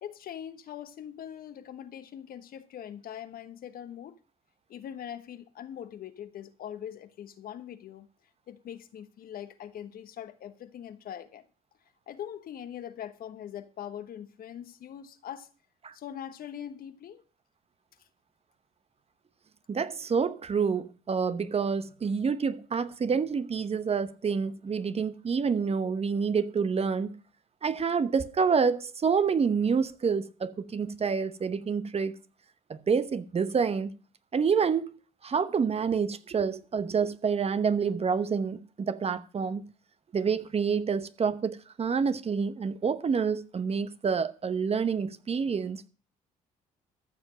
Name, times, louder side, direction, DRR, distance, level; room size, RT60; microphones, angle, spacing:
voice 1, 0.0-4.1 4.7-8.1 8.5-11.5 12.1-15.5 15.9-17.2, left 10 dB, 60° left, 1.2 m, -42 dB
voice 2, 19.7-27.2 27.6-32.2 32.7-33.9 34.3-39.6 40.1-45.9, right 6 dB, 40° right, 1.0 m, -28 dB
14.0 x 6.6 x 6.3 m
supercardioid pair, 60°, 17 cm